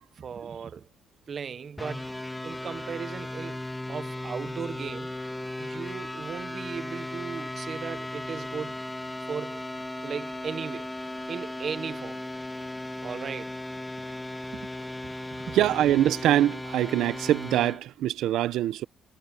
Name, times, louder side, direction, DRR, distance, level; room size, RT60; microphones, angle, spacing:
voice 1, 0.2-0.9 1.3-2.1 2.4-3.6 3.9-5.1 5.6-8.8 9.3-9.7 10.0-10.9 11.3-12.2 13.0-13.6 14.5-14.7 15.0-15.6, right 6 dB, 35° right, 0.7 m, -37 dB
sound 1, 1.8-17.8, left 1 dB, 5° left, 2.0 m, -36 dB
voice 2, 15.5-18.9, right 12 dB, 75° right, 0.7 m, -24 dB
cardioid pair, 175°, 0 cm